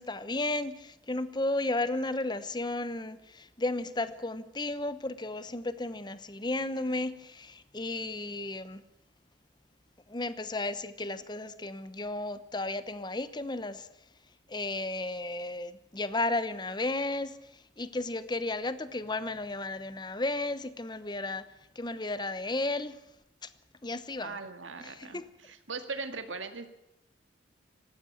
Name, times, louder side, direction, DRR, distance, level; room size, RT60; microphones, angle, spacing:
voice 1, 0.0-8.8 10.1-13.9 14.5-21.4 21.7-23.0 23.4-23.5 23.8-24.4 24.8-25.2, left 2 dB, 20° left, 0.9 m, -34 dB
voice 2, 24.2-26.7, right 4 dB, 85° right, 2.0 m, -39 dB
19.5 x 15.5 x 8.7 m
head